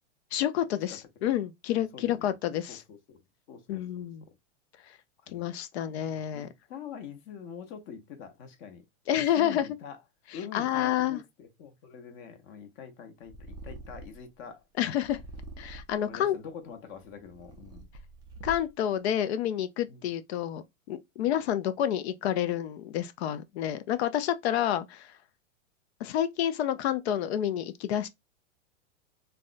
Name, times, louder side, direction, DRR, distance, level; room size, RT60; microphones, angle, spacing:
voice 1, 0.3-2.8 3.7-4.2 5.3-6.5 9.1-9.7 10.5-11.2 14.8-15.2 15.6-16.4 18.4-25.1 26.0-28.1, left 11 dB, 60° left, 0.5 m, -29 dB
voice 2, 1.7-2.3 2.7-3.2 3.5-4.4 5.2-5.4 5.7-8.8 9.1-10.0 10.3-14.6 16.0-17.9 19.9-20.0 21.2-21.3, left 7 dB, 45° left, 0.9 m, -45 dB
Purr, 13.2-14.3 15.0-16.1 16.8-18.9, right 1 dB, 10° right, 0.3 m, -45 dB
3.5 x 2.1 x 2.5 m
hypercardioid pair, 120°, 37 cm